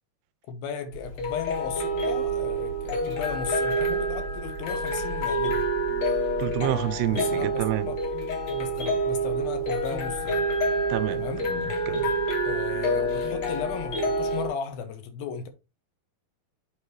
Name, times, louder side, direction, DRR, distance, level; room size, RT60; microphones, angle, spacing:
voice 1, 0.5-5.6 7.1-8.0 8.5-10.4 11.1-11.4 12.4-15.5, left 7 dB, 75° left, 2.7 m, -35 dB
sound 1, 0.9-14.5, right 1 dB, 50° left, 2.3 m, -27 dB
voice 2, 6.4-7.9 10.9-12.1, right 13 dB, 85° right, 2.6 m, -29 dB
8.5 x 5.1 x 3.1 m
omnidirectional pair, 4.6 m